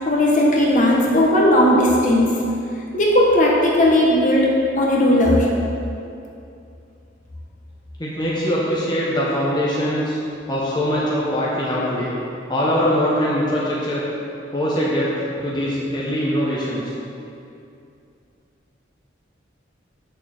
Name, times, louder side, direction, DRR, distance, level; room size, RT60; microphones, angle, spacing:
voice 1, 0.0-2.3 2.9-4.4 4.8-5.5, left 1 dB, 40° left, -3 dB, 1.4 m, -16 dB
voice 2, 8.0-10.2 10.5-12.1 12.5-14.0 14.5-16.9, equal, 20° left, -7 dB, 1.2 m, -22 dB
8.7 x 6.9 x 4.4 m, 2.6 s
head